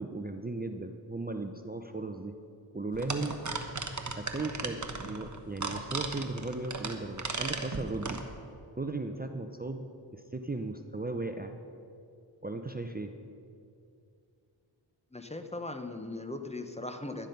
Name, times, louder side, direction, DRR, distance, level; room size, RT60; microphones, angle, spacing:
voice 1, 0.0-2.3 2.7-3.4 4.2-8.2 8.8-9.8 10.1-11.6 12.4-13.1, right 2 dB, 20° right, 6 dB, 0.7 m, -36 dB
sound 1, 2.9-8.2, right 3 dB, 40° right, 1.2 m, -36 dB
voice 2, 15.1-17.3, left 2 dB, 15° left, 7 dB, 0.9 m, -39 dB
12.0 x 9.8 x 5.4 m, 2.5 s
cardioid pair, 50°, 46 cm